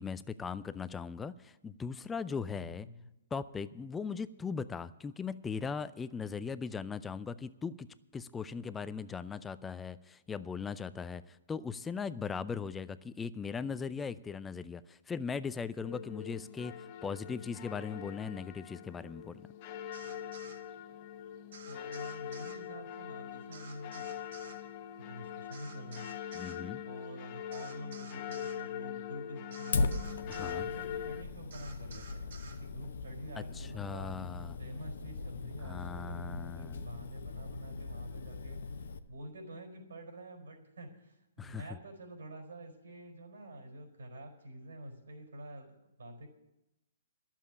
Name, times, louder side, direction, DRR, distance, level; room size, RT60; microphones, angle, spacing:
voice 1, 0.0-2.9 3.3-7.9 8.1-16.7 17.0-19.5 26.3-26.8 30.3-30.7 33.4-34.6 35.6-36.8 41.4-41.6, left 5 dB, 10° left, 15 dB, 0.4 m, -39 dB
voice 2, 2.5-3.1 21.6-24.3 25.0-26.2 26.8-29.9 30.3-34.1 34.6-38.6 39.1-46.3, equal, 85° right, 3 dB, 4.4 m, -47 dB
sound 1, 15.8-31.2, left 9 dB, 40° left, 0.9 m, -43 dB
sound 2, 19.9-20.6 21.5-22.6 23.5-24.6 25.5-26.6 27.5-28.6 29.5-30.6 31.5-32.6, right 4 dB, 65° right, 2.2 m, -52 dB
Fire, 29.7-39.0, left 3 dB, 75° left, 0.9 m, -39 dB
11.5 x 7.4 x 9.6 m, 0.94 s
hypercardioid pair, 140°, 0 cm